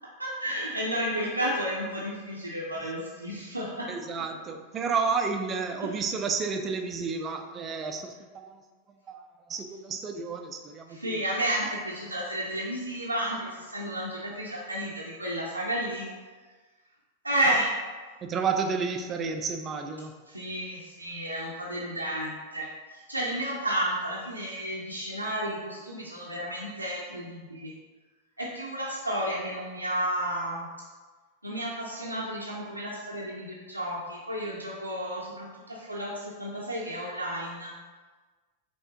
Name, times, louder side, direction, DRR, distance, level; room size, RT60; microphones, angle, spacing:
voice 1, 0.2-3.9 10.9-16.1 17.2-17.7 20.3-27.7 28.4-30.7 31.4-37.7, right 1 dB, 85° right, -5 dB, 0.6 m, -32 dB
voice 2, 3.9-8.6 9.1-11.2 18.2-20.1, right 5 dB, 25° right, 5 dB, 0.4 m, -31 dB
5.5 x 3.5 x 2.7 m, 1.4 s
figure-of-eight pair, 90°, 0 cm